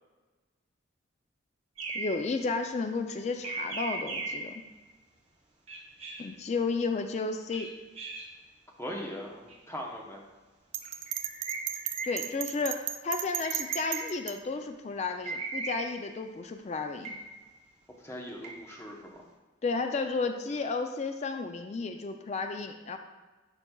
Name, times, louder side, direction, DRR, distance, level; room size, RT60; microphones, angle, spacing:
sound 1, 1.8-2.3 3.4-4.6 5.7-6.3 7.5-8.3 9.5-9.6 10.8-12.4 13.4-14.3 15.2-16.1 17.0-17.4 18.3-18.8, right 3 dB, 30° right, 0.8 m, -38 dB
voice 1, 1.9-4.6 6.2-7.7 12.0-17.2 19.6-23.0, left 4 dB, 35° left, 6 dB, 0.3 m, -32 dB
voice 2, 8.8-10.2 18.0-19.2, equal, 15° left, -1 dB, 0.8 m, -40 dB
Bell, 10.7-14.3, right 11 dB, 65° right, 0.4 m, -34 dB
10.5 x 5.2 x 2.3 m, 1.2 s
head